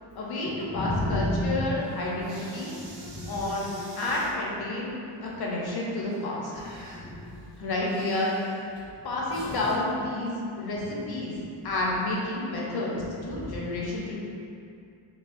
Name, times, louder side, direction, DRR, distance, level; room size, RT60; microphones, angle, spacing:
voice 1, 0.1-2.7 3.3-6.5 7.6-8.3 9.0-10.3 10.6-11.3 11.6-13.0 13.2-14.2, left 2 dB, 55° left, -4 dB, 0.9 m, -30 dB
voice 2, 0.7-1.7 2.2-2.3 3.0-3.5 6.8-7.4 9.3-9.4 12.7-13.6, left 1 dB, 25° left, -5 dB, 0.4 m, -32 dB
sound 1, 1.0-1.3 1.7-4.3 6.0-9.8, right 1 dB, 75° right, 1.4 m, -45 dB
4.7 x 2.2 x 2.5 m, 2.5 s
cardioid pair, 95°, 46 cm